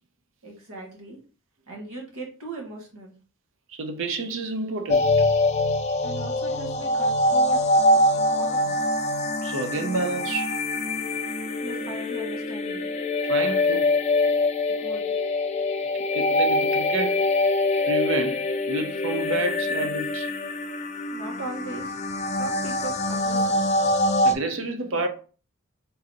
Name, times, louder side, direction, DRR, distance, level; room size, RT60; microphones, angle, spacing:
voice 1, 0.4-1.2 1.7-3.1 6.0-8.7 11.6-12.9 14.7-15.1 21.1-22.0 22.4-23.6, right 2 dB, 85° right, 1.6 m, -38 dB
voice 2, 3.7-5.3 9.4-10.6 13.2-13.9 15.9-17.3 17.9-20.3 24.2-25.1, right 2 dB, 60° right, 0.6 m, -30 dB
sound 1, 4.9-24.3, left 2 dB, 30° left, 0.3 m, -24 dB
4.0 x 3.9 x 2.8 m
head